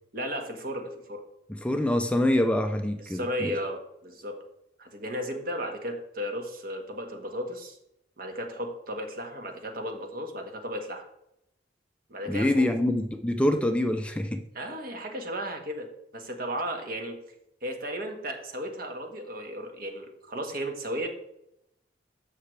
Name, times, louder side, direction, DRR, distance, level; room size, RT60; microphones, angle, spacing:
voice 1, 0.1-1.2 3.0-4.4 4.8-7.8 8.2-11.0 12.1-12.7 14.5-17.2 17.6-21.1, equal, 55° right, 4 dB, 1.6 m, -35 dB
voice 2, 1.5-3.5 12.3-14.4, left 1 dB, 5° left, 6 dB, 0.5 m, -25 dB
14.0 x 5.7 x 3.3 m, 0.80 s
head